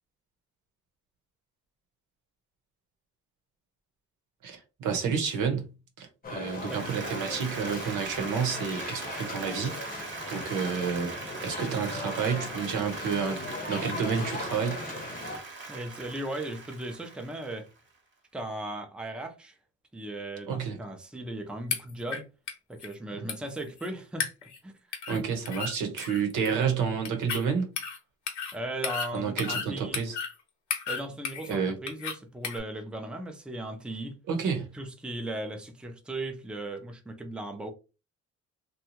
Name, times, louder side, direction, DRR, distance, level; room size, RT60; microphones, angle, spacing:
voice 1, 4.4-5.7 6.0-9.9 10.3-14.8 20.5-20.8 23.2-23.3 25.1-27.7 29.1-30.2 31.5-31.8 34.3-34.7, right 6 dB, 80° right, 0.9 m, -30 dB
sound 1, 6.2-15.4, left 3 dB, 30° left, 0.8 m, -39 dB
Applause, 6.4-17.8, right 3 dB, 40° right, 1.0 m, -41 dB
voice 2, 15.7-17.7 18.3-19.6 19.9-22.3 22.7-24.8 28.5-30.0 30.9-34.2 34.7-37.7, right 1 dB, 5° right, 0.5 m, -37 dB
sound 2, 21.7-22.2 22.5-22.6 22.8-22.9 23.3-23.9 24.2-24.6 24.9-25.2 25.4-25.7 26.0-26.6 27.0-27.4 27.8-28.0 28.3-28.5 28.8-29.7 29.9-30.3 30.7-31.5 31.9-32.1 32.4-32.6, left 6 dB, 70° left, 0.9 m, -33 dB
2.7 x 2.3 x 2.9 m
cardioid pair, 90°, 30 cm